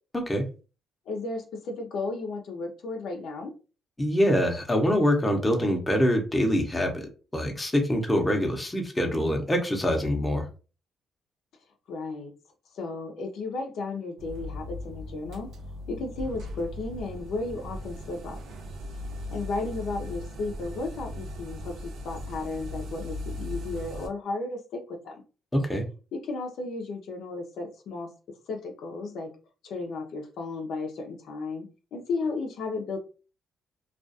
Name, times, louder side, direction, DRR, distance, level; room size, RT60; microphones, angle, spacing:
voice 1, 1.1-3.5 11.9-12.3 12.7-15.5 15.9-18.4 19.3-25.2 26.1-28.1 28.5-29.3 29.6-33.0, left 3 dB, 75° left, 2 dB, 0.6 m, -34 dB
voice 2, 4.0-7.1 7.3-10.5 25.5-25.8, equal, 15° left, 2 dB, 0.7 m, -24 dB
sound 1, 14.2-24.1, left 1 dB, 75° right, 0.5 m, -38 dB
2.4 x 2.3 x 2.6 m, 0.34 s
cardioid pair, 90°, 0 cm